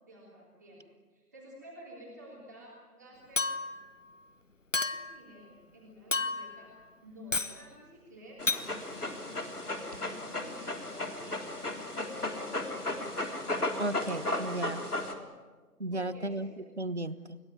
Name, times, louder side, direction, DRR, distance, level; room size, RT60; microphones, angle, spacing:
voice 1, 0.0-0.8 1.1-3.5 4.7-6.7 7.0-9.5 9.9-12.3 14.9-15.3 15.9-16.6, equal, 10° right, -6 dB, 3.4 m, -52 dB
Chink clink, 3.4-3.9 4.7-5.2 6.1-6.6 7.3-7.6 8.5-8.7, left 3 dB, 50° left, 1.1 m, -31 dB
Dog, 8.4-15.1, left 2 dB, 70° left, 3.8 m, -35 dB
voice 2, 13.8-14.8 15.8-17.4, right 1 dB, 45° right, 15 dB, 1.2 m, -35 dB
30.0 x 17.0 x 9.6 m, 1.3 s
figure-of-eight pair, 170°, 47 cm